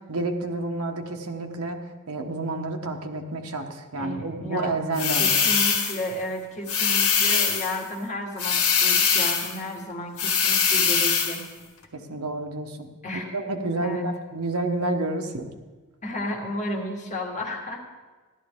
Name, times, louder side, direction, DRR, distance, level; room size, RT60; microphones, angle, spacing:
voice 1, 0.1-5.3 11.9-12.9 13.3-15.5, right 2 dB, 80° right, 4 dB, 1.2 m, -29 dB
voice 2, 4.0-4.8 5.1-11.4 13.0-13.3 13.8-14.0 16.0-17.8, left 1 dB, 35° left, 1 dB, 1.6 m, -33 dB
sound 1, 4.9-6.1 6.7-7.8 8.4-9.6 10.2-11.4, left 6 dB, 70° left, 1.7 m, -22 dB
14.0 x 12.0 x 3.6 m, 1.3 s
head